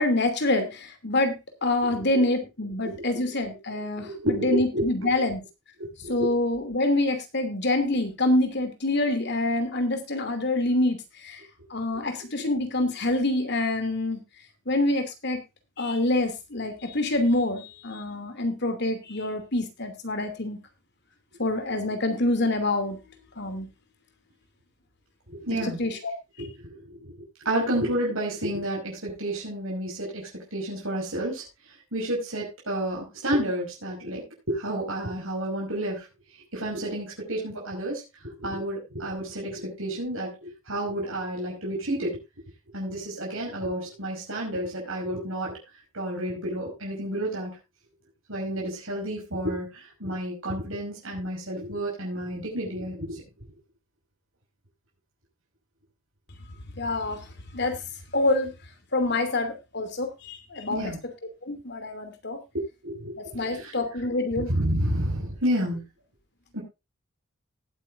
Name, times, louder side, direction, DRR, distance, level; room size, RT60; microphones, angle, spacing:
voice 1, 0.0-5.4 6.1-11.4 11.7-14.2 14.7-15.4 15.8-20.6 21.4-23.0 23.4-23.7 25.6-26.1 56.8-57.2 57.5-57.8 58.1-58.5 58.9-60.8 61.4-62.4 63.2-64.5, left 2 dB, 55° left, 8 dB, 2.7 m, -26 dB
voice 2, 3.9-4.9 5.8-5.9 25.3-25.8 26.4-27.1 27.4-31.4 31.9-36.1 36.5-42.2 42.7-45.6 45.9-47.6 48.3-53.2 60.7-61.0 62.8-63.7 64.4-65.8 66.5-66.6, right 1 dB, 75° right, -3 dB, 5.5 m, -30 dB
19.0 x 8.8 x 2.6 m, 0.25 s
head